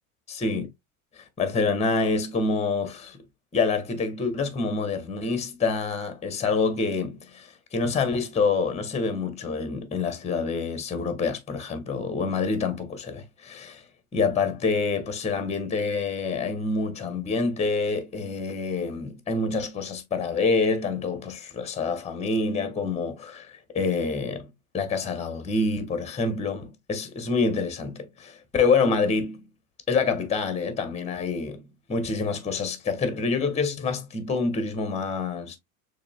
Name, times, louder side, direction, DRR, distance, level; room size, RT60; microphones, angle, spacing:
voice 1, 0.3-0.7 1.2-3.2 3.5-13.8 14.1-29.4 29.9-35.6, left 4 dB, 15° left, 1.2 m, -27 dB
6.5 x 2.9 x 2.2 m
hypercardioid pair, 100°, 42 cm